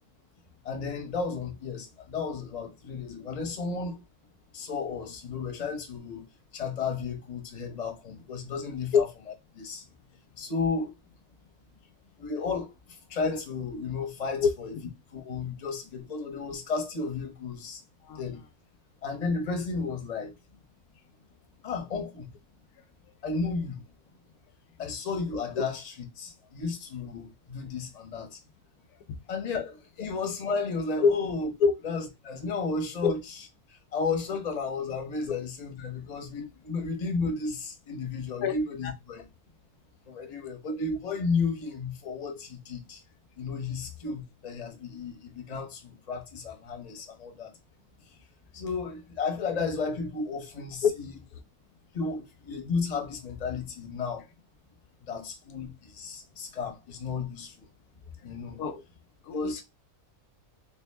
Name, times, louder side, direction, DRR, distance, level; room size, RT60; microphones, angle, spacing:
voice 1, 0.6-4.0 4.5-6.2 6.5-9.0 9.5-9.8 10.4-10.9 12.2-14.7 15.1-17.8 18.1-18.4 19.0-20.3 21.6-22.3 23.2-23.8 24.8-28.4 29.3-31.5 31.8-33.4 33.7-39.2 40.1-43.0 43.4-47.5 48.5-51.1 51.9-54.3 55.0-57.7 58.2-58.6 59.3-59.6, left 4 dB, 30° left, 0.9 m, -33 dB
voice 2, 59.2-59.6, left 5 dB, 85° left, 1.1 m, -23 dB
3.4 x 2.8 x 3.4 m
omnidirectional pair, 1.5 m